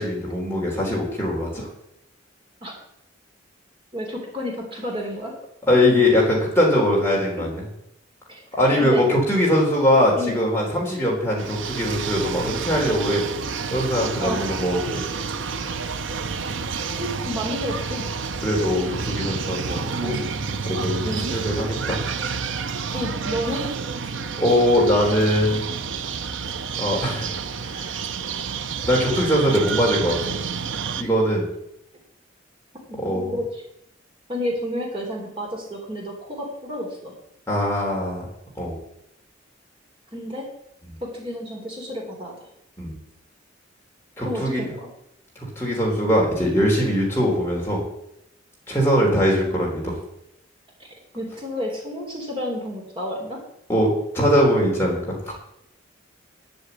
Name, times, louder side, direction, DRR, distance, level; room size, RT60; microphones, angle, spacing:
voice 1, 0.0-1.7 5.7-7.6 8.5-13.2 13.7-15.0 18.4-20.2 20.6-22.0 24.4-25.6 26.8-27.3 27.6-27.9 28.9-30.3 31.0-31.5 33.0-33.3 37.5-38.3 38.6-38.8 42.8-42.9 44.2-44.6 45.6-47.8 48.7-50.0 53.7-55.3, equal, 10° left, -3 dB, 3.7 m, -21 dB
voice 2, 3.9-5.3 7.4-7.5 8.3-9.0 10.1-10.3 14.2-14.4 16.9-18.1 21.0-21.3 22.9-23.6 32.9-33.6 34.3-37.1 40.1-40.5 41.0-42.5 44.2-44.9 51.1-53.4, equal, 25° right, -1 dB, 3.3 m, -30 dB
sound 1, 11.4-31.0, right 5 dB, 70° right, 0.7 m, -29 dB
10.5 x 8.0 x 8.3 m, 0.80 s
head